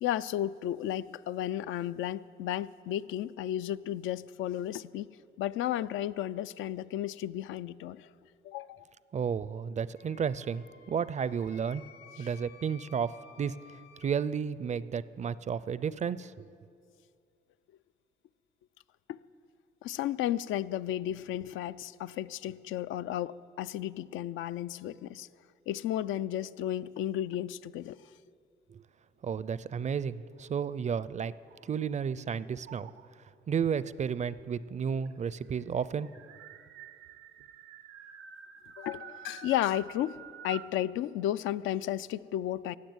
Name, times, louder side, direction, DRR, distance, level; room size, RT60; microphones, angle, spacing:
voice 1, 0.0-5.1 5.4-8.1 8.4-8.8 12.2-12.3 19.1-19.2 19.8-25.3 25.7-28.0 38.8-42.8, left 12 dB, 85° left, 0.4 m, -33 dB
voice 2, 9.1-11.8 12.2-16.5 28.7-28.8 29.2-31.3 31.6-32.9 33.5-36.1, right 7 dB, 35° right, 0.4 m, -32 dB
Wind instrument woodwind instrument, 9.9-14.1, left 6 dB, 60° left, 1.0 m, -55 dB
sound 1, 30.8-32.1 32.6-33.3 34.3-34.4 34.6-34.7 35.1-40.8, right 10 dB, 85° right, 0.7 m, -49 dB
16.5 x 7.3 x 9.5 m
cardioid pair, 90°, 20 cm